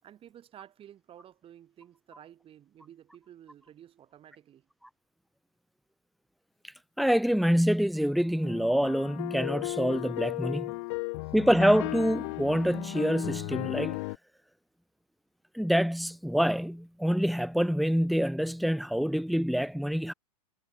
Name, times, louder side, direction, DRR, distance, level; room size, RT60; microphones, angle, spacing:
voice 1, 0.0-4.7 11.2-11.4, right 11 dB, 25° right, 6.6 m, -52 dB
voice 2, 7.0-10.7 11.3-14.0 15.5-20.1, equal, ahead, 0.5 m, -26 dB
sound 1, 8.4-14.2, left 26 dB, 50° left, 1.1 m, -35 dB
hypercardioid pair, 120°, 20 cm